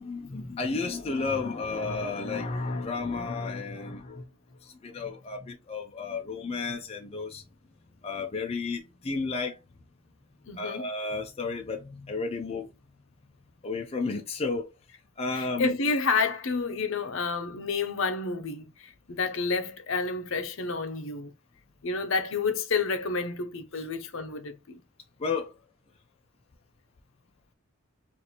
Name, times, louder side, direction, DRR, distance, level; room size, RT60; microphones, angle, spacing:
voice 1, 0.0-4.2 4.6-7.4 8.0-9.6 10.6-12.7 13.6-14.7 15.2-15.7 23.8-23.9 25.2-25.5, left 4 dB, 30° left, 0.4 m, -32 dB
voice 2, 10.5-10.9 15.3-21.3 21.8-24.8, left 4 dB, 65° left, 0.6 m, -30 dB
2.9 x 2.5 x 4.0 m
head